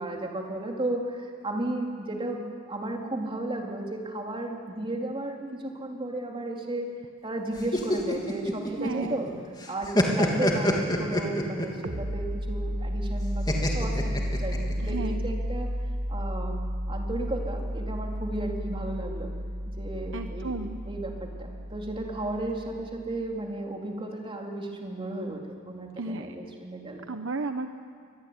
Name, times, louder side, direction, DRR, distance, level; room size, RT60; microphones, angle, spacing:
voice 1, 0.0-6.9 7.2-9.3 9.7-15.7 16.1-16.6 16.9-19.3 19.8-20.6 20.9-27.1, right 2 dB, 25° right, 1 dB, 3.9 m, -34 dB
sound 1, 7.6-9.3 9.6-11.8 13.5-14.9, left 1 dB, 20° left, 3.2 m, -26 dB
voice 2, 8.8-9.3 14.8-15.2 20.1-20.8 26.0-26.4 27.1-27.7, right 3 dB, 65° right, 7 dB, 1.1 m, -33 dB
sound 2, 11.8-23.2, equal, 80° right, 2.0 m, -32 dB
24.5 x 23.5 x 9.9 m, 2.1 s
head